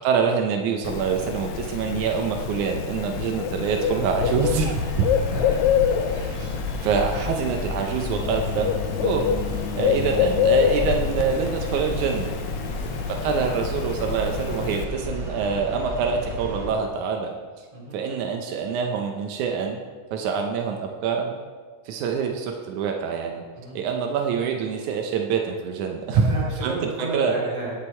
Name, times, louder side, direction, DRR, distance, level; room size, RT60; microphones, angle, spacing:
voice 1, 0.0-5.1 6.1-9.3 9.8-12.3 13.1-17.7 17.9-19.8 20.1-21.4 21.9-23.4 23.8-27.4, right 6 dB, 85° right, 2 dB, 2.3 m, -26 dB
Bird, 0.8-14.8, left 8 dB, 80° left, 1.9 m, -26 dB
sound 1, 4.3-16.7, left 1 dB, 40° right, 2.4 m, -33 dB
voice 2, 5.1-5.7 12.7-13.0 17.7-18.0 23.5-23.8 26.1-27.7, right 2 dB, 55° right, -5 dB, 3.7 m, -32 dB
17.0 x 6.6 x 4.4 m, 1.5 s
omnidirectional pair, 3.3 m